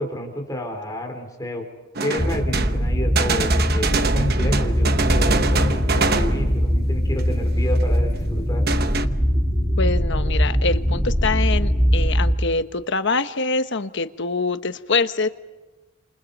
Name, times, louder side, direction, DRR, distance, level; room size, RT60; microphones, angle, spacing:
voice 1, 0.0-1.6 2.0-8.7, left 1 dB, 15° left, 2 dB, 4.2 m, -29 dB
sound 1, 2.0-6.8 7.2-7.3 7.8-7.9 8.7-9.1, right 4 dB, 50° right, 1.1 m, -25 dB
sound 2, 2.2-12.3, equal, 15° right, 4.0 m, -21 dB
voice 2, 9.8-15.3, left 3 dB, 60° left, 10 dB, 1.2 m, -24 dB
29.5 x 28.0 x 5.4 m, 1.2 s
head